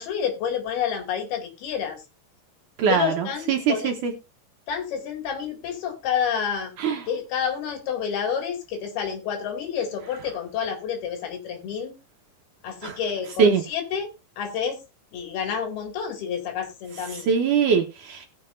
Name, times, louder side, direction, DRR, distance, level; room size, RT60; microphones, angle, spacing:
voice 1, 0.0-2.0 2.9-3.9 4.7-6.7 7.1-11.9 12.6-14.1 14.4-14.8 15.1-17.3, left 7 dB, 75° left, 4 dB, 4.3 m, -29 dB
voice 2, 2.8-4.1 6.8-7.0 12.8-13.0 13.4-13.6 17.3-18.3, right 6 dB, 70° right, 3 dB, 2.1 m, -22 dB
20.0 x 6.7 x 2.5 m, 0.25 s
omnidirectional pair, 4.6 m